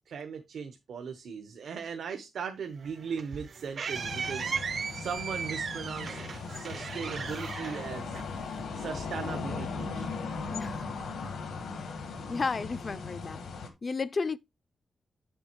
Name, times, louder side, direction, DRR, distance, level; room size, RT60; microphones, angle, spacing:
voice 1, 0.1-4.5 4.9-6.2 6.5-8.2 8.7-10.1, right 6 dB, 80° right, 0.9 m, -38 dB
sound 1, 2.8-8.6, right 6 dB, 55° right, 0.5 m, -37 dB
sound 2, 3.9-13.7, left 4 dB, 90° left, 1.9 m, -38 dB
voice 2, 10.5-10.9 11.8-11.9 12.3-13.4 13.8-14.4, left 4 dB, 35° left, 0.4 m, -33 dB
8.5 x 7.0 x 2.9 m
wide cardioid pair, 120°, 0 cm